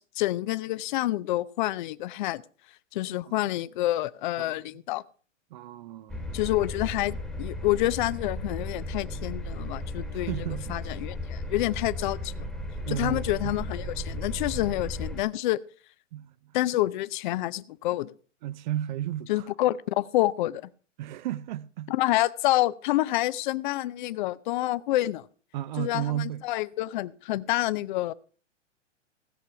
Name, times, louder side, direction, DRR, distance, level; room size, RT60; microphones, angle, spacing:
voice 1, 0.0-2.4 2.9-5.0 6.3-10.3 10.7-12.3 12.9-15.6 16.5-18.1 19.3-20.7 21.9-25.3 25.8-28.1, left 16 dB, 40° left, 0.5 m, -28 dB
voice 2, 5.5-6.4 10.1-10.8 12.8-13.5 16.1-16.5 18.4-19.5 21.0-21.9 25.5-26.4, right 13 dB, 40° right, 0.5 m, -34 dB
sound 1, 6.1-15.2, left 1 dB, ahead, 1.4 m, -35 dB
16.5 x 6.7 x 5.8 m
hypercardioid pair, 130°, 37 cm